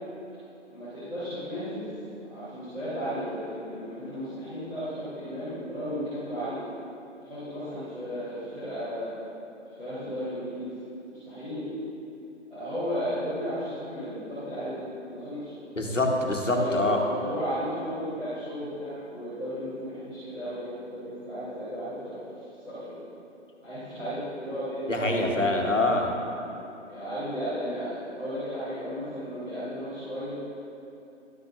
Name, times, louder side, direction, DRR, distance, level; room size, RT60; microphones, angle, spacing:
voice 1, 0.7-1.9 2.2-6.6 7.2-9.3 9.6-10.9 11.2-11.7 12.5-15.5 16.5-22.2 22.6-22.9 23.6-25.7 26.5-30.3, equal, ahead, -22 dB, 0.5 m, -34 dB
voice 2, 15.8-17.0 24.9-26.1, left 2 dB, 90° left, 1 dB, 1.2 m, -25 dB
12.0 x 6.0 x 2.6 m, 2.9 s
figure-of-eight pair, 135°, 37 cm